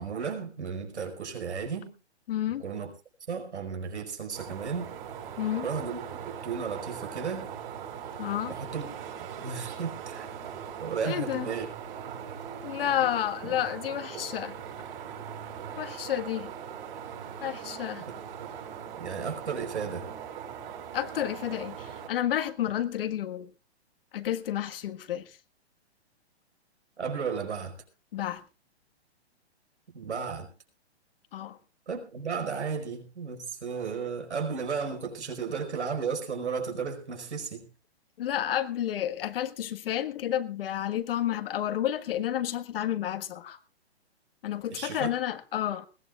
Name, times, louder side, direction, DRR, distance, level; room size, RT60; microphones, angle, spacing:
voice 1, 0.0-1.9 2.6-2.9 3.3-4.9 5.6-7.5 8.5-8.9 9.4-10.3 10.8-11.7 13.4-13.5 14.1-14.3 14.6-14.8 18.0-18.1 18.4-18.5 19.0-20.1 27.0-27.8 29.9-30.5 31.9-37.6 44.7-45.1, right 6 dB, 90° right, 4.9 m, -34 dB
voice 2, 2.3-2.6 5.4-5.7 8.2-8.6 11.0-11.5 12.6-14.5 15.8-16.5 17.4-18.0 20.9-23.5 24.1-25.4 28.1-28.4 31.3-31.6 38.2-43.6 44.4-45.9, left 11 dB, 55° left, 1.6 m, -30 dB
sound 1, 4.3-22.1, right 8 dB, 55° right, 5.8 m, -40 dB
21.0 x 17.0 x 2.4 m
hypercardioid pair, 145°, 33 cm